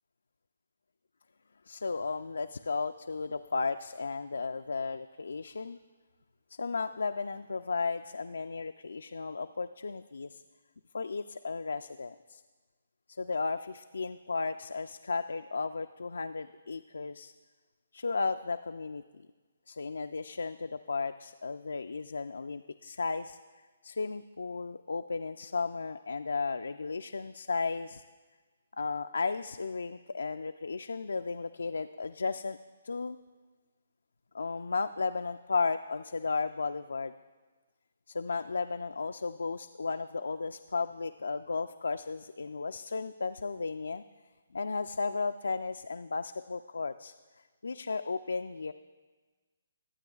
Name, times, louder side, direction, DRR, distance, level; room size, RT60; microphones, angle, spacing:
voice 1, 1.7-5.8 6.6-10.4 10.9-12.4 13.1-17.3 17.9-19.0 19.7-23.4 23.8-28.0 28.7-32.6 32.8-33.2 34.3-37.1 38.1-44.0 44.5-47.1 47.6-48.7, left 4 dB, 75° left, 8 dB, 0.3 m, -34 dB
23.5 x 8.8 x 2.3 m, 1.3 s
figure-of-eight pair, 140°, 0 cm